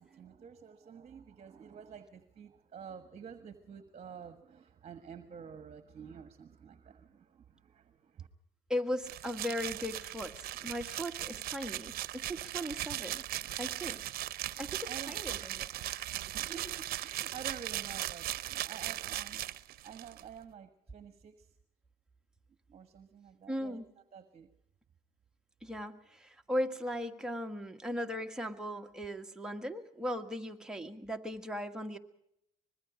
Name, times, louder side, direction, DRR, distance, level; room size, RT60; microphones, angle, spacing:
voice 1, 0.0-8.3 14.5-15.2 16.3-19.4 19.8-21.5 22.7-24.5, right 7 dB, 40° right, 10 dB, 1.5 m, -49 dB
voice 2, 8.7-13.2 13.6-14.0 14.6-15.7 23.5-23.8 25.6-32.0, equal, 5° right, 3 dB, 1.6 m, -38 dB
sound 1, 9.0-20.2, right 14 dB, 65° right, 0.8 m, -38 dB
25.0 x 21.0 x 5.0 m, 0.77 s
cardioid pair, 110°, 17 cm